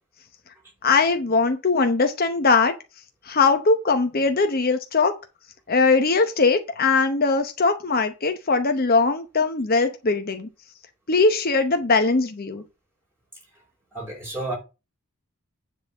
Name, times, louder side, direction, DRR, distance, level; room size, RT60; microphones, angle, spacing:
voice 1, 0.8-2.7 3.2-5.2 5.7-10.5 11.1-12.6, left 4 dB, 40° left, 0.8 m, -20 dB
voice 2, 13.9-14.6, right 2 dB, 10° right, 4.6 m, -30 dB
9.8 x 4.1 x 7.2 m
head